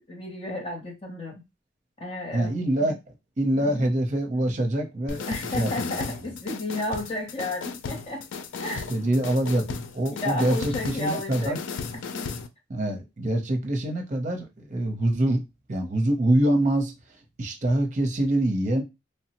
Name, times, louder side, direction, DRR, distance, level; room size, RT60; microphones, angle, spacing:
voice 1, 0.0-1.4 2.0-2.9 3.6-3.9 5.3-8.3 8.6-8.9 10.1-11.6 11.9-12.3, left 1 dB, 30° left, 0.6 m, -33 dB
voice 2, 2.3-3.0 3.4-6.0 8.9-11.6 12.7-15.4 15.7-16.9 17.4-18.8, right 1 dB, 40° right, 0.6 m, -25 dB
sound 1, 5.1-12.5, left 5 dB, 90° left, 0.4 m, -35 dB
3.1 x 2.0 x 2.8 m
head